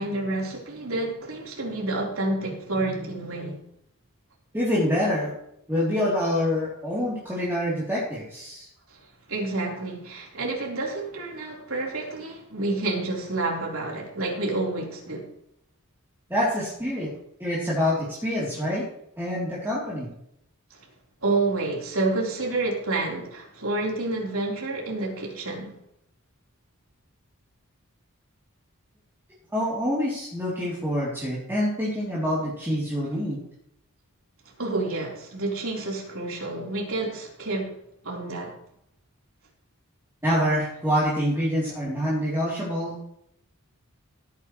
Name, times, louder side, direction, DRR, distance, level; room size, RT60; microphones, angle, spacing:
voice 1, 0.0-3.6 8.9-15.3 20.7-20.9 21.2-25.8 34.4-37.7 38.0-38.6, right 2 dB, 65° right, 4.0 m, -29 dB
voice 2, 4.5-5.3 5.7-8.7 16.3-17.1 17.4-18.9 19.2-20.1 29.5-33.4 40.2-43.0, equal, 10° right, 3.2 m, -26 dB
17.0 x 9.4 x 3.2 m
head